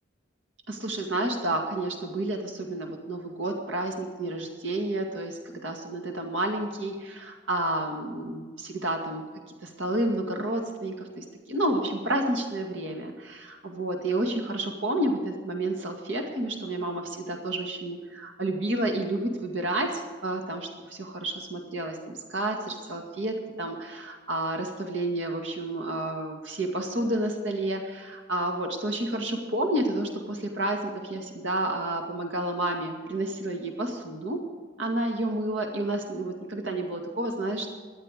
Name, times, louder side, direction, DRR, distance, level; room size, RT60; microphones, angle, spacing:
voice 1, 0.7-9.2 9.6-34.4 34.8-37.7, right 1 dB, 85° right, 3 dB, 2.1 m, -30 dB
17.5 x 11.5 x 5.0 m, 1.5 s
head